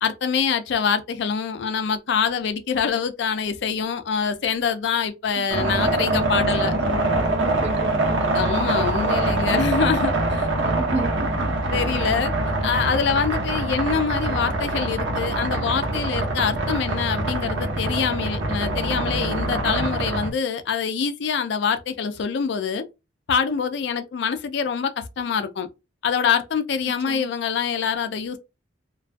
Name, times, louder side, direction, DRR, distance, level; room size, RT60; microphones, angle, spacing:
voice 1, 0.0-6.7 8.3-10.5 11.7-12.3 12.6-22.8 23.3-25.7 26.0-28.4, left 6 dB, 60° left, 0.3 m, -25 dB
voice 2, 5.4-5.7 6.1-6.8 7.1-8.4 9.5-9.6 10.6-11.6 27.1-27.3, right 3 dB, 30° right, 0.3 m, -33 dB
sound 1, 5.5-20.3, right 2 dB, 75° right, 0.6 m, -24 dB
2.2 x 2.2 x 2.4 m
head